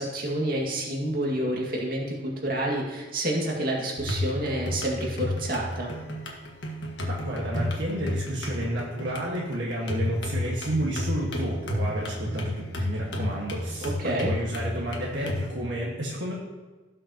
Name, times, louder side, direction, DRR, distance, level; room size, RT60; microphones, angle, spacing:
voice 1, 0.0-5.9 13.8-14.3, right 1 dB, 45° right, -2 dB, 2.1 m, -29 dB
sound 1, 4.0-15.5, left 1 dB, 60° left, 1.6 m, -32 dB
voice 2, 7.1-16.3, right 1 dB, 60° right, -5 dB, 1.7 m, -31 dB
17.0 x 6.5 x 3.0 m, 1.2 s
head